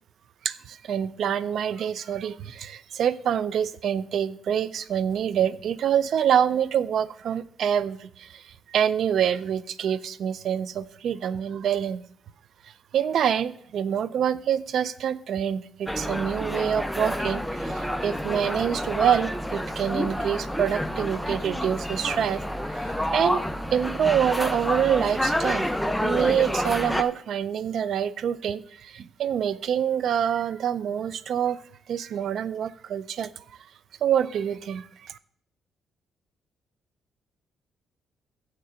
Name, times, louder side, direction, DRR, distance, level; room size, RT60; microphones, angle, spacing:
voice 1, 0.4-12.0 12.9-23.4 23.7-25.7 26.0-31.6 31.9-33.3 34.0-35.2, right 9 dB, 65° right, 17 dB, 0.4 m, -26 dB
sound 1, 15.9-27.0, equal, ahead, 0.6 m, -29 dB
7.5 x 6.6 x 6.8 m, 0.63 s
cardioid pair, 90°, 0 cm